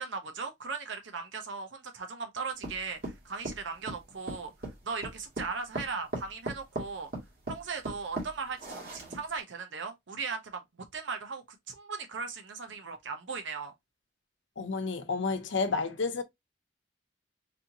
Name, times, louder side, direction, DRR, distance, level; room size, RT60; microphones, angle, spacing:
voice 1, 0.0-4.5 4.8-7.1 7.5-10.6 10.9-13.7, right 5 dB, 80° right, 0.7 m, -38 dB
sound 1, 2.6-9.4, right 1 dB, 55° right, 1.7 m, -38 dB
voice 2, 14.6-16.2, left 4 dB, 80° left, 0.8 m, -30 dB
4.2 x 2.7 x 2.8 m
head